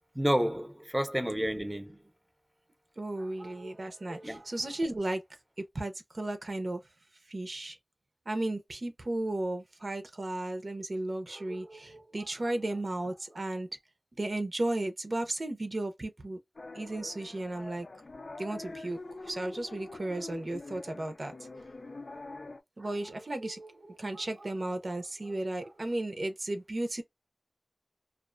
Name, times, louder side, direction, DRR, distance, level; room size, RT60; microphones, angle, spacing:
voice 1, 0.1-2.0 4.2-4.4, equal, 10° right, 0.6 m, -30 dB
voice 2, 3.0-5.2 5.6-6.8 7.3-7.8 8.3-13.7 14.2-16.4 16.7-17.9 18.4-21.3 22.8-27.0, right 2 dB, 70° right, 0.5 m, -34 dB
sound 1, 16.6-22.6, left 2 dB, 85° left, 0.4 m, -45 dB
2.4 x 2.1 x 2.4 m
wide cardioid pair, 60°, 0 cm